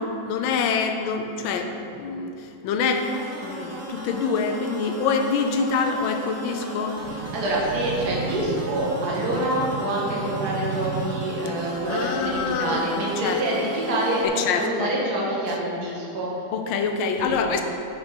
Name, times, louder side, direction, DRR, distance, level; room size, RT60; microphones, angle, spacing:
voice 1, 0.0-2.3 2.6-3.1 3.4-7.0 11.9-12.9 13.2-13.4 14.4-14.9 16.5-17.6, left 5 dB, 80° left, 6 dB, 1.5 m, -25 dB
sound 1, 2.8-14.3, equal, 20° right, 0.4 m, -36 dB
sound 2, 7.0-12.8, right 6 dB, 80° right, 1.3 m, -35 dB
voice 2, 7.1-16.3 17.1-17.5, right 1 dB, 55° right, -4 dB, 1.9 m, -26 dB
9.4 x 6.3 x 4.6 m, 2.8 s
omnidirectional pair, 2.1 m